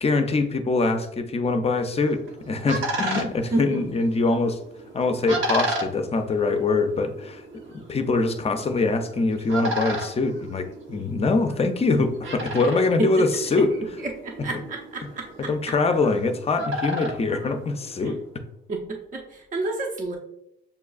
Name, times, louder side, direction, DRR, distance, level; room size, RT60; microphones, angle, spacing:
voice 1, 0.0-4.6 4.9-7.4 7.7-13.7 15.5-18.2, left 3 dB, 30° left, 7 dB, 0.5 m, -23 dB
sound 1, 2.0-18.3, right 1 dB, 70° right, 1.0 m, -34 dB
voice 2, 3.1-3.8 13.0-13.2 13.6-15.7 18.0-18.1 18.7-20.2, right 2 dB, 40° right, 0 dB, 0.7 m, -30 dB
6.9 x 2.3 x 2.3 m, 0.79 s
cardioid pair, 90°, 20 cm